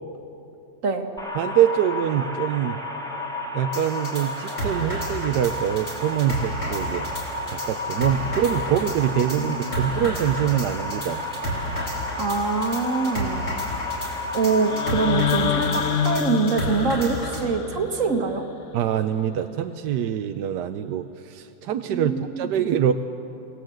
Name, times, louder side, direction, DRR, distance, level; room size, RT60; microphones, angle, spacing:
sound 1, 1.2-16.2, left 1 dB, ahead, 2.0 m, -32 dB
voice 1, 1.4-2.8 3.5-7.1 7.5-11.2 18.7-22.9, right 10 dB, 75° right, 8 dB, 1.2 m, -24 dB
sound 2, 3.7-17.4, equal, 35° left, 4.1 m, -32 dB
voice 2, 9.4-9.9 12.2-13.4 14.3-18.4 21.9-22.5, right 4 dB, 45° right, 5 dB, 1.8 m, -25 dB
sound 3, 14.7-18.7, left 8 dB, 65° left, 0.7 m, -27 dB
26.5 x 18.5 x 7.8 m, 2.8 s
omnidirectional pair, 1.9 m